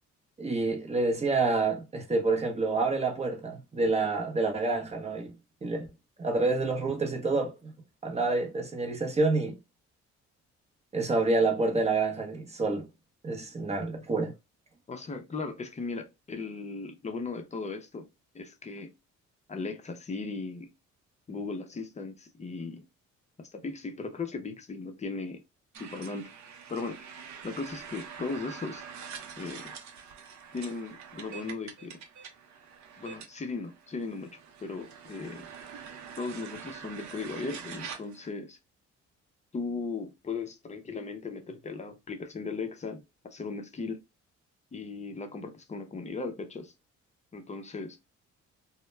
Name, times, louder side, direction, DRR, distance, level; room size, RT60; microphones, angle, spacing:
voice 1, 0.4-5.3 5.6-5.9 6.2-7.7 8.0-9.6 10.9-12.9 13.2-14.3, right 3 dB, 20° right, 0.7 m, -28 dB
voice 2, 14.9-18.1 18.3-18.9 19.5-20.7 21.3-22.8 23.4-25.4 25.8-26.4 26.7-27.0 27.4-28.9 29.4-29.7 30.5-32.0 33.0-35.5 36.2-38.6 39.5-44.0 44.7-46.7 47.3-48.0, left 4 dB, 25° left, 0.5 m, -37 dB
sound 1, 25.7-38.3, right 6 dB, 70° right, 0.6 m, -45 dB
2.1 x 2.1 x 3.1 m
cardioid pair, 90°, 30 cm